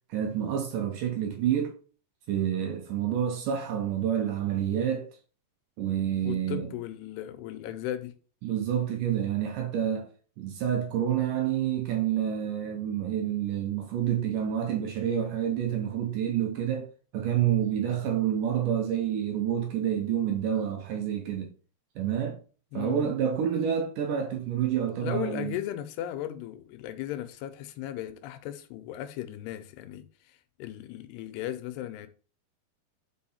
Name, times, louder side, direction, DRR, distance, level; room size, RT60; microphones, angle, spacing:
voice 1, 0.1-1.8 2.3-5.1 5.8-6.7 8.4-10.1 10.4-16.9 17.1-21.5 22.0-22.4 22.7-25.6, right 9 dB, 80° right, 1.9 m, -28 dB
voice 2, 6.2-8.2 22.7-23.1 25.0-32.1, left 12 dB, 85° left, 2.8 m, -36 dB
5.5 x 5.2 x 4.2 m
omnidirectional pair, 4.7 m